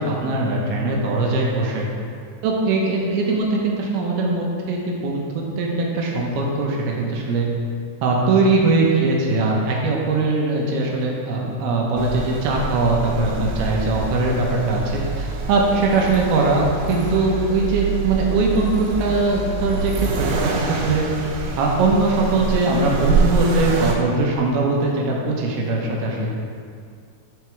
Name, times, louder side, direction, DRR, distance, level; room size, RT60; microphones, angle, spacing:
voice 1, 0.0-1.9 2.4-7.5 8.0-21.0 21.6-26.3, right 3 dB, 75° right, -2 dB, 2.7 m, -21 dB
Accelerating revving vroom, 12.0-23.9, right 4 dB, 90° right, 3.3 m, -26 dB
11.5 x 4.4 x 4.6 m, 2.2 s
omnidirectional pair, 5.0 m